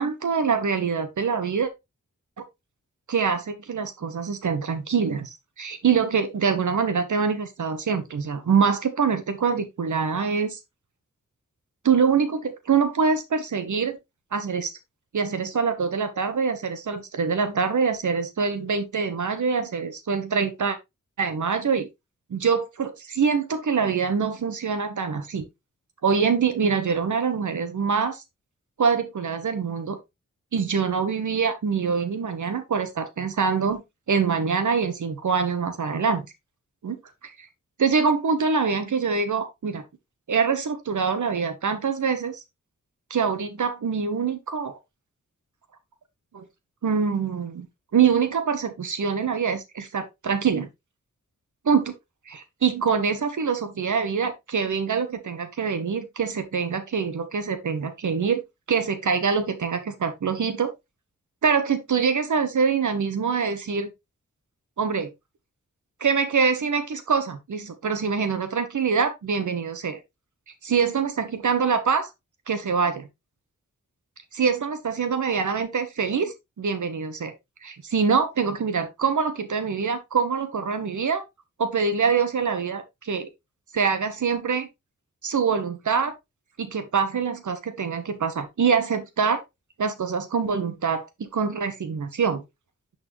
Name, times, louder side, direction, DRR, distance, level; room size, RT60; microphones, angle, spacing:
voice 1, 0.0-1.7 3.1-10.6 11.8-14.0 14.3-14.7 15.1-20.8 21.2-21.9 22.3-25.5 26.0-28.2 28.8-30.0 30.5-33.8 34.1-36.2 36.8-37.0 37.2-37.5 37.8-39.8 40.3-42.4 43.1-44.7 46.3-46.4 46.8-47.7 47.9-50.7 51.6-51.9 52.3-58.4 58.7-60.7 61.4-63.9 64.8-65.1 66.0-70.0 70.6-72.1 72.5-73.1 74.3-77.3 77.6-81.2 81.6-83.3 83.7-84.7 85.2-86.1 86.6-89.4 89.8-92.4, right 6 dB, 70° right, 1.2 m, -24 dB
9.7 x 4.1 x 3.2 m
cardioid pair, 45°, 32 cm